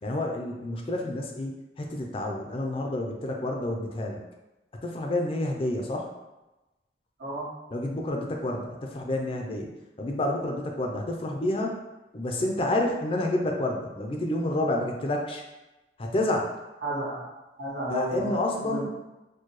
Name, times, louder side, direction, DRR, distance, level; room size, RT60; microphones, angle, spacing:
voice 1, 0.0-4.2 4.8-6.1 7.7-9.7 10.0-11.8 12.1-15.4 16.0-16.5 17.9-18.9, left 1 dB, 30° left, 1 dB, 0.4 m, -29 dB
voice 2, 16.8-17.3 17.6-18.3 18.6-19.0, right 1 dB, 90° right, -7 dB, 1.4 m, -32 dB
4.4 x 2.2 x 3.0 m, 1.0 s
head